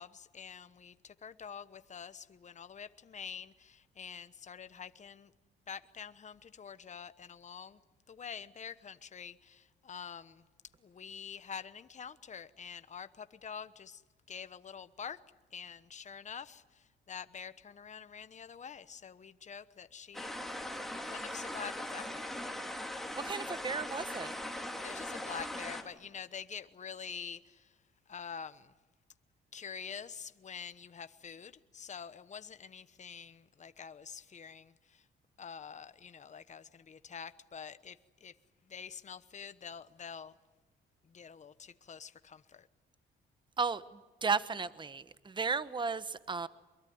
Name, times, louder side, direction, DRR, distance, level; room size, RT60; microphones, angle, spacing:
voice 1, 0.0-5.3 5.7-7.8 8.1-10.4 10.8-14.0 14.3-15.2 15.5-20.4 20.9-22.3 24.5-27.8 28.1-28.7 29.5-35.1 35.4-38.4 38.7-40.3 41.0-42.7, left 7 dB, 35° left, 1.1 m, -46 dB
sound 1, 20.1-25.8, left 1 dB, ahead, 3.2 m, -40 dB
voice 2, 23.2-24.3 43.6-43.8 44.2-46.5, right 5 dB, 25° right, 1.0 m, -34 dB
25.0 x 22.5 x 9.5 m
cardioid pair, 90°, 20 cm